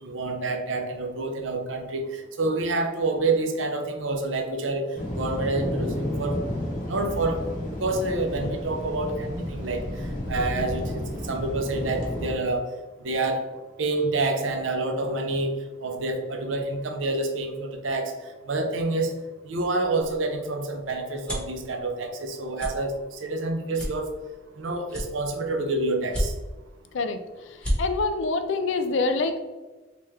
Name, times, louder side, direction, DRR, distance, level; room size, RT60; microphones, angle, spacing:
voice 1, 0.0-4.9 5.2-6.4 6.8-7.4 7.7-9.8 10.3-12.6 13.0-13.5 13.8-18.1 18.5-19.1 19.4-22.9 23.2-24.1 24.6-26.3, right 2 dB, 75° right, 4 dB, 0.6 m, -28 dB
sound 1, 4.9-12.3, left 1 dB, 40° left, 0.8 m, -32 dB
sound 2, 20.0-21.6 22.1-22.3 22.5-22.7 23.2-23.3 23.7-24.5 24.9-25.6 26.0-26.7 27.1-27.2 27.5-27.8, equal, 5° left, 0.9 m, -30 dB
voice 2, 27.8-29.4, left 3 dB, 70° left, 8 dB, 0.4 m, -25 dB
3.4 x 2.9 x 3.2 m, 1.3 s
head